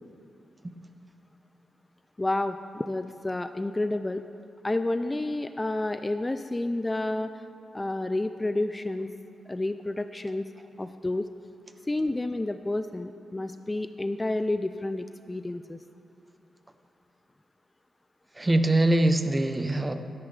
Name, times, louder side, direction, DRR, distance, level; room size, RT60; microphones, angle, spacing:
voice 1, 2.2-4.2 4.6-7.4 7.7-9.1 9.5-10.5 10.8-11.3 11.9-15.8, left 2 dB, 20° left, 10 dB, 0.3 m, -30 dB
voice 2, 18.4-19.9, right 1 dB, 20° right, 8 dB, 0.7 m, -23 dB
13.0 x 10.5 x 3.3 m, 2.8 s
cardioid pair, 70°, 0 cm